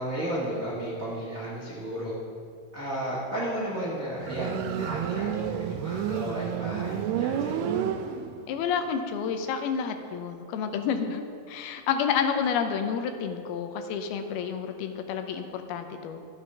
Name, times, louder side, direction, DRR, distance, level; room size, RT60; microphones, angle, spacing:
voice 1, 0.0-2.2 2.7-7.8, right 1 dB, 60° right, -5 dB, 0.8 m, -33 dB
Motorcycle, 4.2-8.6, right 9 dB, 90° right, 2.6 m, -30 dB
voice 2, 8.5-16.2, left 7 dB, 80° left, 6 dB, 2.6 m, -30 dB
13.0 x 7.1 x 5.4 m, 2.3 s
omnidirectional pair, 4.5 m